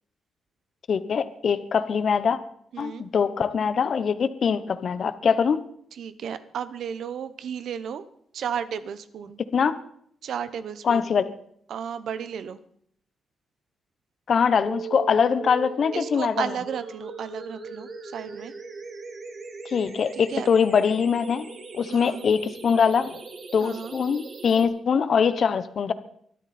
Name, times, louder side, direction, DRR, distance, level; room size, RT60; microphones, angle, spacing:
voice 1, 0.9-2.4 2.8-5.6 9.5-9.8 10.8-11.3 14.3-16.3 19.6-21.5 21.7-23.2 23.5-25.9, left 6 dB, 50° left, 13 dB, 0.9 m, -23 dB
voice 2, 5.9-8.0 8.3-9.4 10.2-11.2 11.7-12.6 15.9-18.5 20.1-20.5 21.9-22.2 23.6-23.9, right 8 dB, 75° right, 13 dB, 1.0 m, -33 dB
sound 1, 14.6-24.6, right 4 dB, 45° right, 2.6 m, -39 dB
23.5 x 12.5 x 4.3 m, 0.67 s
wide cardioid pair, 145°, 0 cm